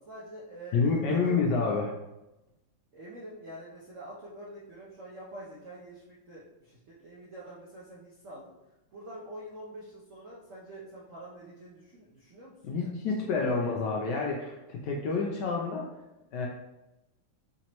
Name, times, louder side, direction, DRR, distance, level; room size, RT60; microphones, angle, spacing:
voice 1, 0.0-1.4 2.9-8.5 8.9-13.7, right 1 dB, 65° right, -7 dB, 0.7 m, -46 dB
voice 2, 0.7-1.9 12.6-15.9 16.3-16.5, left 4 dB, 75° left, -1 dB, 1.0 m, -28 dB
4.3 x 2.9 x 2.9 m, 0.95 s
omnidirectional pair, 2.2 m